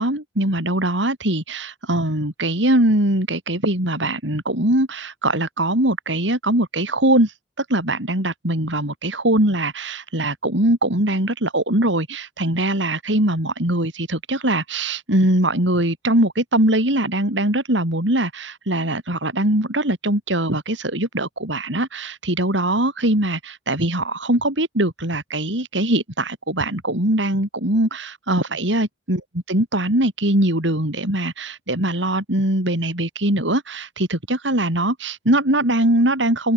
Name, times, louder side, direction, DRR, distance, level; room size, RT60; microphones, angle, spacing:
voice 1, 0.0-7.3 7.6-29.2 29.5-36.5, right 1 dB, 85° right, 6.1 m, -21 dB
open air
head